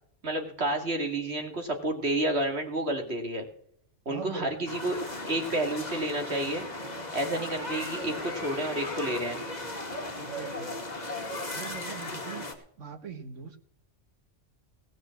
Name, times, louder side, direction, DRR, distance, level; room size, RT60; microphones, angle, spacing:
voice 1, 0.2-3.5 4.1-5.0 5.3-6.7 7.1-9.4, right 1 dB, 60° right, 3 dB, 2.6 m, -30 dB
voice 2, 4.1-4.7 10.2-10.8 11.5-13.6, right 6 dB, 80° right, 8 dB, 1.7 m, -42 dB
sound 1, 4.7-12.5, left 2 dB, 35° left, 2.1 m, -36 dB
18.0 x 6.2 x 7.2 m, 0.67 s
omnidirectional pair, 1.2 m